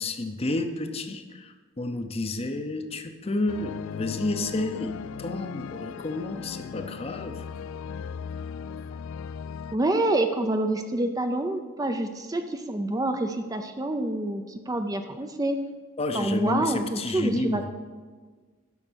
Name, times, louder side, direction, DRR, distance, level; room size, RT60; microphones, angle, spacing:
voice 1, 0.0-7.5 16.0-17.7, left 2 dB, 30° left, 7 dB, 0.6 m, -30 dB
sound 1, 3.5-9.8, left 7 dB, 70° left, 0.3 m, -37 dB
voice 2, 9.7-15.6 16.1-17.7, right 2 dB, 15° right, 7 dB, 0.4 m, -27 dB
11.0 x 6.6 x 6.2 m, 1.5 s
head